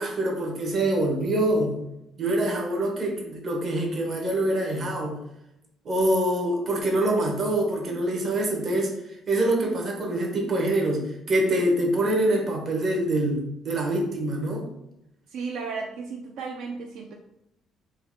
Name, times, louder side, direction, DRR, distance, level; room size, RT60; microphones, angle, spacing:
voice 1, 0.0-1.8 2.2-5.2 5.8-14.7, right 1 dB, 35° right, 0 dB, 0.9 m, -25 dB
voice 2, 15.3-17.1, right 4 dB, 65° right, 2 dB, 0.4 m, -34 dB
5.3 x 2.2 x 3.6 m, 0.84 s
cardioid pair, 180°, 0 cm